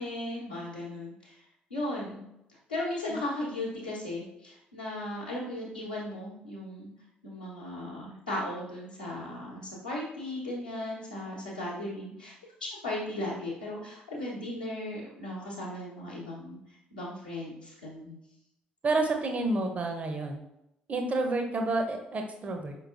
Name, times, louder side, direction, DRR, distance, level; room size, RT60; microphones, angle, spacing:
voice 1, 0.0-1.4 1.7-2.2 2.5-6.9 7.2-12.3 12.6-18.2, left 1 dB, 85° left, -7 dB, 0.9 m, -36 dB
voice 2, 18.8-20.4 20.9-22.8, right 2 dB, 30° right, 4 dB, 0.6 m, -29 dB
4.8 x 3.0 x 2.4 m, 0.83 s
figure-of-eight pair, 45°, 4 cm